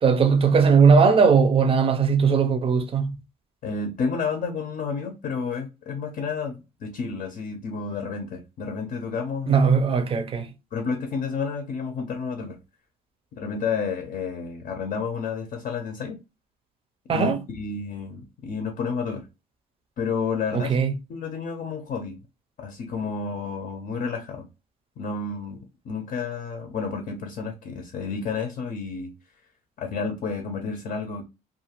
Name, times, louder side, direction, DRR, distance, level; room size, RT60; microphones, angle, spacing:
voice 1, 0.0-3.1 9.5-10.5 17.1-17.4 20.5-20.9, right 5 dB, 35° right, 0.5 m, -19 dB
voice 2, 3.6-9.7 10.7-12.6 13.3-16.2 17.1-19.3 20.0-20.8 21.1-22.2 22.6-24.5 25.0-29.1 29.8-31.2, left 5 dB, 55° left, 0.6 m, -30 dB
2.5 x 2.4 x 2.9 m
cardioid pair, 110°, 17 cm